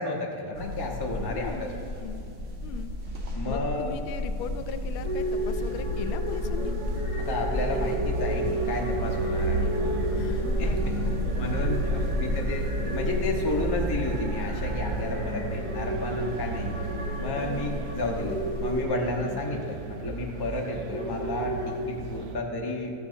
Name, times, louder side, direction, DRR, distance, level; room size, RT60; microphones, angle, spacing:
voice 1, 0.0-1.7 3.3-3.9 7.2-9.7 10.6-10.9 11.4-11.8 12.2-16.8 17.2-22.9, left 2 dB, 30° left, 0 dB, 0.4 m, -32 dB
sound 1, 0.5-18.8, left 1 dB, 50° right, 0.8 m, -32 dB
voice 2, 1.3-2.2 2.6-2.9 3.4-6.8 10.1-12.2 19.2-19.7, left 6 dB, 85° left, 9 dB, 1.4 m, -39 dB
sound 2, 5.0-21.8, right 1 dB, 25° right, 1.3 m, -34 dB
sound 3, 8.4-22.4, right 4 dB, 75° right, 1.3 m, -35 dB
14.0 x 9.3 x 2.7 m, 2.9 s
omnidirectional pair, 2.3 m